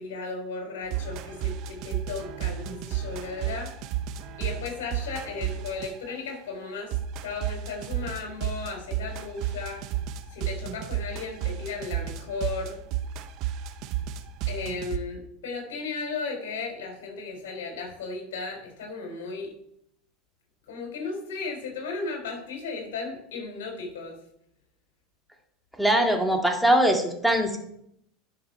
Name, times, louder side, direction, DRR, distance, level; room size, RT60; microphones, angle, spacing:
voice 1, 0.0-3.7 4.4-7.0 7.2-9.8 10.3-12.8 14.5-19.5 20.7-24.2, left 4 dB, 70° left, 2 dB, 3.8 m, -35 dB
sound 1, 0.9-6.2 6.9-15.0, right 10 dB, 55° right, 0.8 m, -32 dB
voice 2, 25.8-27.6, right 1 dB, ahead, 2 dB, 1.9 m, -22 dB
10.5 x 6.0 x 4.3 m, 0.73 s
hypercardioid pair, 90°, 0 cm